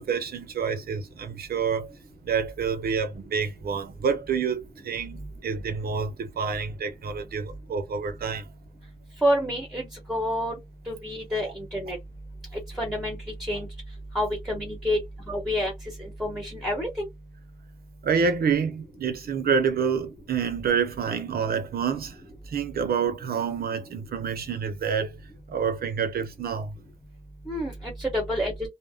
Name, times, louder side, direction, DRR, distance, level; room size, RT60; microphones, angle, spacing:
voice 1, 0.0-1.9 2.2-8.5 11.4-11.5 18.0-22.2 22.5-25.2 25.5-26.8, right 6 dB, 90° right, 0.7 m, -28 dB
voice 2, 9.2-10.5 10.9-12.0 12.8-13.7 14.1-15.0 15.3-15.7 16.0-17.1 27.5-28.5, equal, ahead, 0.9 m, -28 dB
2.6 x 2.1 x 3.3 m
wide cardioid pair, 175°, 15 cm